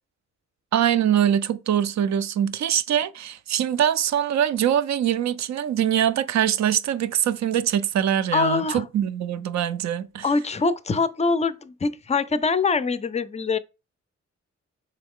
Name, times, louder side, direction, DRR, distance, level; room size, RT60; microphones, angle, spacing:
voice 1, 0.7-10.2, right 10 dB, 65° right, 0.5 m, -23 dB
voice 2, 8.3-8.8 10.2-13.6, left 4 dB, 25° left, 0.4 m, -23 dB
3.8 x 3.0 x 3.6 m
cardioid pair, 70°, 30 cm